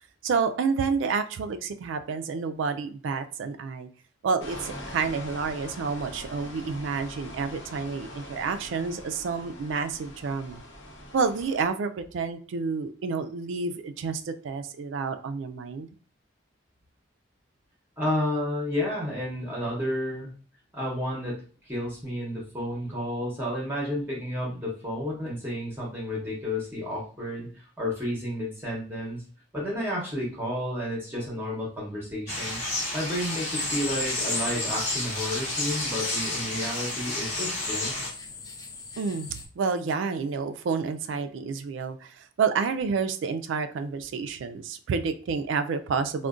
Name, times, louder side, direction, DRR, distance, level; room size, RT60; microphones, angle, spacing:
voice 1, 0.2-3.9 4.2-10.6 11.1-15.9 39.0-46.3, right 5 dB, 70° right, 9 dB, 0.3 m, -29 dB
sound 1, 4.4-11.7, left 1 dB, 75° left, 0.7 m, -42 dB
voice 2, 18.0-20.3 20.7-29.2 29.5-32.6 32.9-37.9, left 1 dB, 10° right, -4 dB, 0.7 m, -31 dB
sound 2, 32.3-38.1, left 2 dB, 40° left, 0.8 m, -30 dB
sound 3, 33.1-39.5, left 4 dB, 20° left, 0.3 m, -43 dB
3.7 x 2.1 x 2.4 m, 0.42 s
head